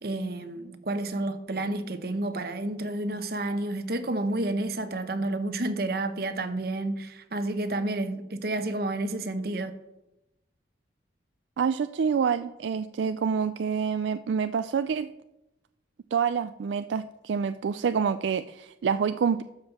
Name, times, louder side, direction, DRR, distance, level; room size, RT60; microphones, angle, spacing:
voice 1, 0.0-9.7, right 2 dB, 60° right, 0.9 m, -30 dB
voice 2, 11.6-15.1 16.1-19.4, right 6 dB, 85° right, 0.4 m, -27 dB
12.5 x 5.4 x 7.1 m
head